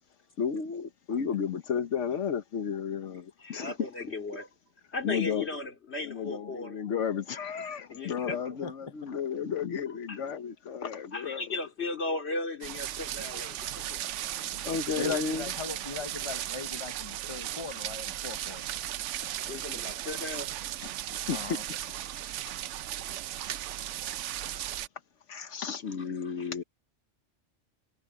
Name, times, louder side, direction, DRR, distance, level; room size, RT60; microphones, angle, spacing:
voice 1, 0.4-3.9 5.0-5.5 6.0-11.4 14.7-15.4 21.3-21.4 25.3-26.6, left 7 dB, 85° left, 1.3 m, -33 dB
voice 2, 3.4-4.5 4.9-6.8 7.9-8.6 10.1-10.2 11.1-13.8 19.5-20.5 26.0-26.6, left 2 dB, 65° left, 2.9 m, -36 dB
voice 3, 6.3-6.7 8.6-9.1 15.0-18.7 21.3-21.6, left 5 dB, 30° left, 0.6 m, -39 dB
sound 1, 12.6-24.9, right 12 dB, 85° right, 0.9 m, -36 dB
omnidirectional pair, 1.2 m